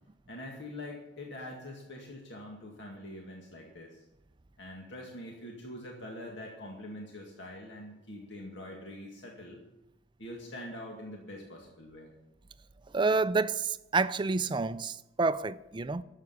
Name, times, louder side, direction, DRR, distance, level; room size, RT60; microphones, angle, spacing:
voice 1, 0.3-4.0 4.6-9.6 10.2-12.2, left 1 dB, 70° left, 2.2 m, -44 dB
voice 2, 12.9-16.0, right 4 dB, 25° right, 0.4 m, -29 dB
12.0 x 8.1 x 9.6 m
head